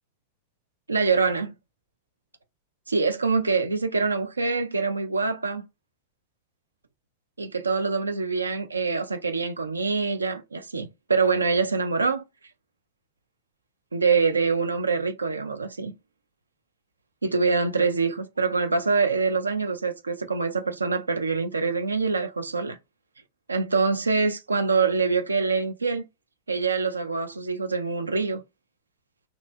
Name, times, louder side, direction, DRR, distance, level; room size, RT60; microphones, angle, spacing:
voice 1, 0.9-1.5 2.9-5.6 7.4-12.2 13.9-15.9 17.2-22.8 23.5-26.0 26.5-28.4, right 4 dB, 80° right, 0.3 m, -25 dB
2.7 x 2.1 x 2.4 m
figure-of-eight pair, 90°, 0 cm